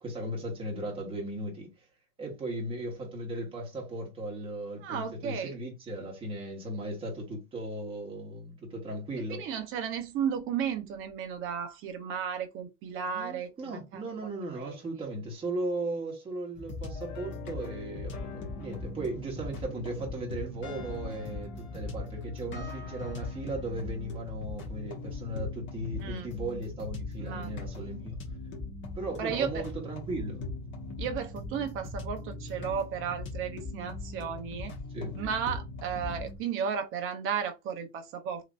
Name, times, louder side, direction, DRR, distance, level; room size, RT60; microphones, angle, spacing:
voice 1, 0.0-1.9 2.2-9.4 13.1-28.2 28.9-30.5 34.9-35.2, right 1 dB, 15° right, 1.2 m, -37 dB
voice 2, 4.8-5.5 9.3-14.3 14.6-14.8 26.0-26.3 27.2-27.5 29.2-29.6 31.0-34.7 35.2-38.4, right 7 dB, 30° right, 0.7 m, -34 dB
sound 1, 16.6-36.4, left 3 dB, 30° left, 1.1 m, -40 dB
3.2 x 2.9 x 2.5 m
supercardioid pair, 140°, 39 cm